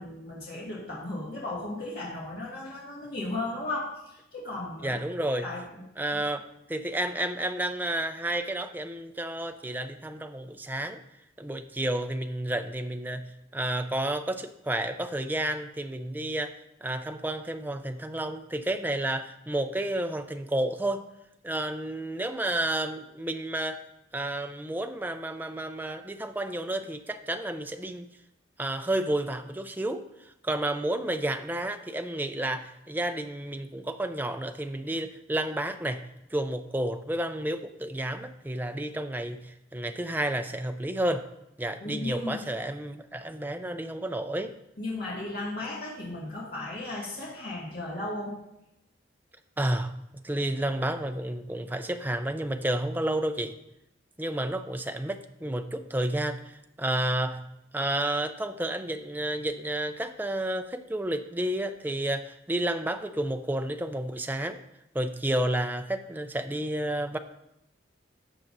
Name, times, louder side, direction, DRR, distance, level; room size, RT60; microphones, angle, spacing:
voice 1, 0.0-5.0 5.4-5.8 41.8-42.4 44.8-48.3, left 2 dB, 55° left, -6 dB, 1.9 m, -35 dB
voice 2, 4.8-5.5 6.0-11.0 11.4-16.6 16.8-21.1 21.4-23.8 24.1-28.1 28.6-30.0 30.4-36.0 36.3-41.2 41.6-44.5 49.6-50.0 50.2-53.6 54.2-57.4 57.7-64.6 64.9-67.2, right 1 dB, 10° right, 7 dB, 0.4 m, -31 dB
12.5 x 7.5 x 2.6 m, 0.84 s
head